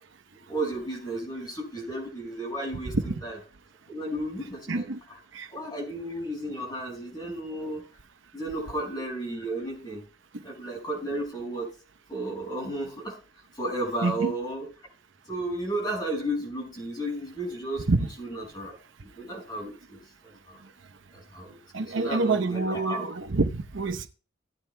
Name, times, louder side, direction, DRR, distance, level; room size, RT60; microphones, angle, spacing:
voice 1, 0.5-3.4 3.9-4.9 5.5-7.8 8.3-10.0 10.4-11.7 12.1-13.2 13.6-14.7 15.3-17.9 18.2-18.8 19.0-20.6 21.1-23.1, right 1 dB, 20° left, 5.4 m, -33 dB
voice 2, 4.7-5.0 5.3-5.5 14.0-14.3 17.9-18.1 21.7-24.1, right 3 dB, 80° right, 0.8 m, -27 dB
17.5 x 9.1 x 2.2 m
head